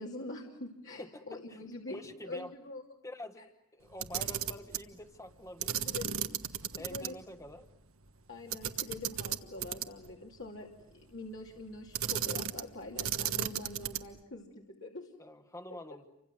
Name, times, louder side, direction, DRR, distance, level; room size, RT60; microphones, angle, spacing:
voice 1, 0.0-2.8 3.4-3.5 5.6-6.1 6.5-7.2 8.3-15.1 15.7-16.1, left 2 dB, 55° left, -1 dB, 2.8 m, -45 dB
voice 2, 1.0-1.6 1.9-2.5 3.0-5.8 6.8-7.7 15.2-16.1, left 1 dB, 15° left, 8 dB, 1.5 m, -47 dB
Camera, 3.9-4.9 5.6-7.1 7.4-7.5 8.5-10.1 11.9-12.7 13.0-14.2, right 9 dB, 65° right, 1.4 m, -34 dB
30.0 x 25.5 x 7.6 m, 0.83 s
head